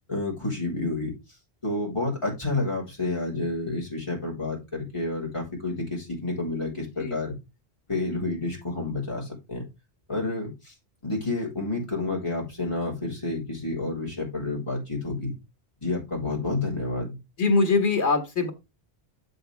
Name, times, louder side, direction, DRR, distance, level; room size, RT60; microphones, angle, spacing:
voice 1, 0.1-1.1 1.6-7.4 7.9-9.6 10.1-10.7 11.0-15.3 15.8-17.2, left 2 dB, 25° left, -3 dB, 3.8 m, -29 dB
voice 2, 17.4-18.5, left 4 dB, 90° left, 6 dB, 1.8 m, -22 dB
7.8 x 6.8 x 3.4 m, 0.24 s
omnidirectional pair, 1.1 m